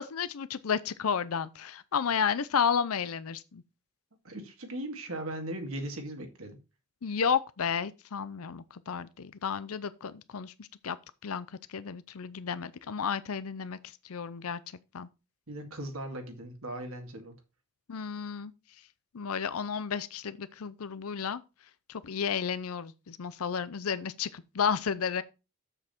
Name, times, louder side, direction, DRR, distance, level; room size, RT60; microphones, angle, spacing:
voice 1, 0.0-3.6 7.0-11.0 11.2-13.8 14.0-14.6 14.9-15.1 17.9-18.5 19.1-21.4 21.9-25.2, left 6 dB, 80° left, 0.6 m, -32 dB
voice 2, 4.2-6.6 15.5-17.4, right 1 dB, 70° right, 2.2 m, -38 dB
7.5 x 6.6 x 4.4 m
head